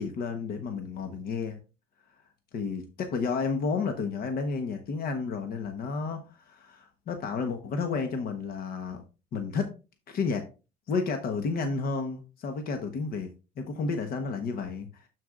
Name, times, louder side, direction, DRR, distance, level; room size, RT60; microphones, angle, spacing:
voice 1, 0.0-1.6 2.5-9.0 9.3-9.7 10.1-10.5 10.9-13.3 13.6-15.1, left 4 dB, 60° left, 1.1 m, -31 dB
12.5 x 4.5 x 2.4 m
cardioid pair, 110°, 17 cm